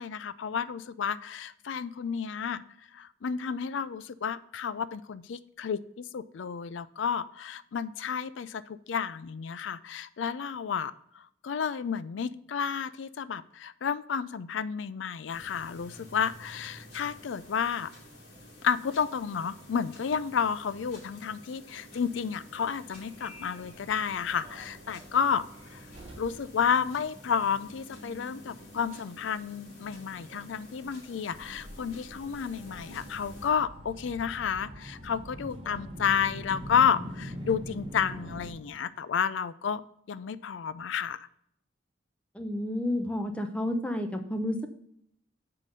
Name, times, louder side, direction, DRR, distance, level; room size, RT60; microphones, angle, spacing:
voice 1, 0.0-2.6 2.9-17.9 18.6-25.4 25.7-25.8 26.2-39.8 40.1-41.3, left 7 dB, 85° left, 16 dB, 0.4 m, -31 dB
sound 1, 15.3-33.5, left 1 dB, 60° left, 2.2 m, -50 dB
Subway metro underground, 22.9-38.5, equal, 25° right, 1.3 m, -45 dB
voice 2, 42.3-44.7, left 1 dB, 5° left, 6 dB, 0.7 m, -31 dB
7.4 x 3.9 x 6.4 m, 0.71 s
head